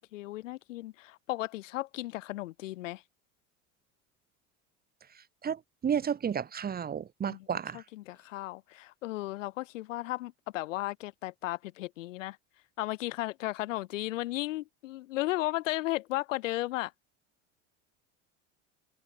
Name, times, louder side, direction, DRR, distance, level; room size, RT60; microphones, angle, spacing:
voice 1, 0.0-3.0 7.3-7.5 7.7-12.4 12.8-16.9, left 17 dB, 85° left, 0.7 m, -35 dB
voice 2, 5.4-7.8, right 7 dB, 25° right, 1.0 m, -32 dB
hypercardioid pair, 90°, 37 cm